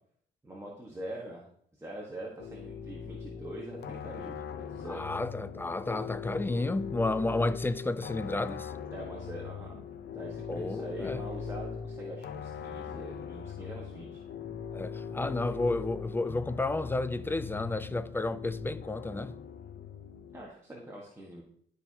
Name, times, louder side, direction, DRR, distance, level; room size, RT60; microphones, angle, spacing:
voice 1, 0.4-1.5 1.7-5.0 7.2-7.5 8.9-9.8 10.1-14.2 15.2-15.4 20.3-21.4, right 1 dB, 15° right, 1.5 m, -43 dB
sound 1, 2.4-20.5, left 6 dB, 55° left, 0.7 m, -40 dB
voice 2, 4.9-8.7 10.5-11.3 14.7-19.4, left 2 dB, 10° left, 0.4 m, -32 dB
12.0 x 4.8 x 2.9 m
cardioid pair, 90°, 20 cm